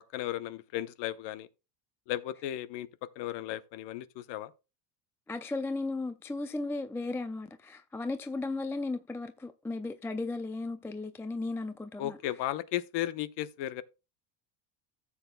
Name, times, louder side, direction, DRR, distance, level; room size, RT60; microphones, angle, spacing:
voice 1, 0.1-1.5 2.1-2.9 3.2-4.5 12.0-13.8, left 13 dB, 55° left, 0.9 m, -35 dB
voice 2, 5.3-12.2, left 3 dB, 5° left, 0.4 m, -35 dB
14.5 x 7.2 x 2.2 m
supercardioid pair, 95°, 49 cm